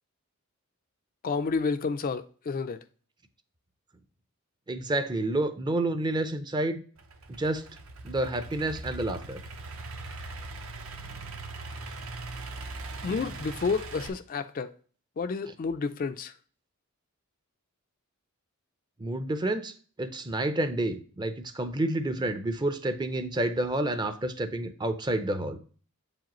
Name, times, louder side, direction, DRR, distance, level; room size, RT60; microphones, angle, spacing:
voice 1, 1.2-2.8 13.0-14.7 15.2-16.3, left 4 dB, 40° left, 0.3 m, -30 dB
voice 2, 4.7-6.8 7.4-7.7 8.0-9.4 19.0-19.7 20.0-25.6, right 1 dB, 20° right, 0.5 m, -29 dB
Idling / Accelerating revving vroom, 7.0-14.1, right 2 dB, 70° right, 0.9 m, -40 dB
7.5 x 4.9 x 3.0 m
head